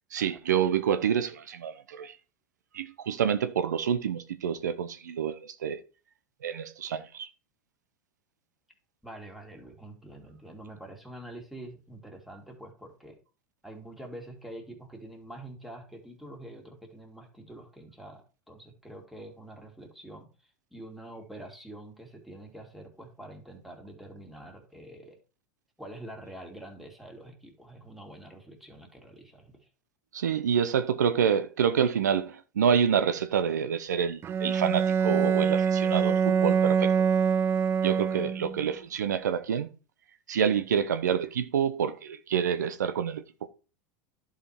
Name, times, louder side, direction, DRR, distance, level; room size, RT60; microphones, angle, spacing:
voice 1, 0.1-2.2 2.7-5.8 6.4-7.3 30.1-36.9 37.8-39.7 40.3-43.5, right 8 dB, 85° right, 0.7 m, -27 dB
voice 2, 9.0-13.2 13.6-25.2 25.8-29.7, right 1 dB, ahead, 2.7 m, -46 dB
Bowed string instrument, 34.2-38.7, right 7 dB, 25° right, 0.4 m, -25 dB
11.0 x 5.0 x 4.4 m
hypercardioid pair, 90°, 9 cm